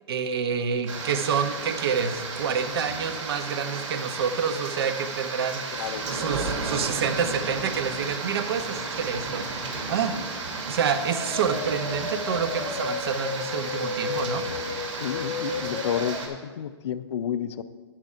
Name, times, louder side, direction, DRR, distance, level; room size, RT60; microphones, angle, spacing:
voice 1, 0.1-9.4 9.9-10.2 10.7-14.4, right 6 dB, 55° right, 9 dB, 0.8 m, -28 dB
sound 1, 0.9-16.3, right 3 dB, 85° right, 2.3 m, -33 dB
voice 2, 5.7-6.0 15.0-17.6, left 9 dB, 60° left, 13 dB, 0.6 m, -30 dB
sound 2, 10.9-16.2, left 5 dB, 20° left, 0.9 m, -33 dB
9.8 x 7.8 x 4.5 m, 1.4 s
hypercardioid pair, 165°, 16 cm